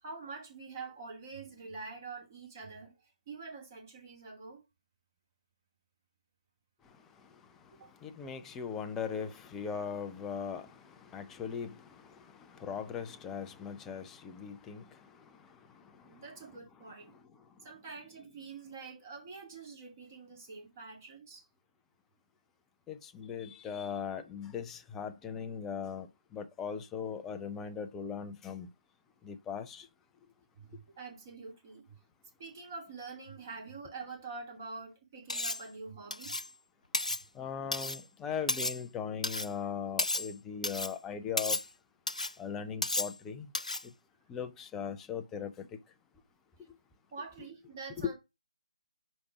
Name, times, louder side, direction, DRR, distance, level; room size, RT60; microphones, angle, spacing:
voice 1, 0.0-4.6 7.8-7.9 16.0-17.1 17.6-21.5 30.6-32.0 32.4-36.3 40.9-41.0 47.1-48.2, right 4 dB, 25° right, 2.4 m, -46 dB
voice 2, 8.0-15.0 22.9-26.1 26.3-28.7 29.2-29.9 37.4-41.6 42.4-43.5 44.3-45.7, left 7 dB, 10° left, 0.5 m, -39 dB
Cutlery silverware, 35.3-35.7 36.1-36.5 36.9-37.2 37.7-38.0 38.5-38.8 39.2-39.5 40.0-40.3 40.6-41.0 41.4-41.7 42.1-42.3 42.8-43.2 43.5-43.9, left 2 dB, 80° left, 0.3 m, -33 dB
5.2 x 5.0 x 4.5 m
figure-of-eight pair, 150°, 4 cm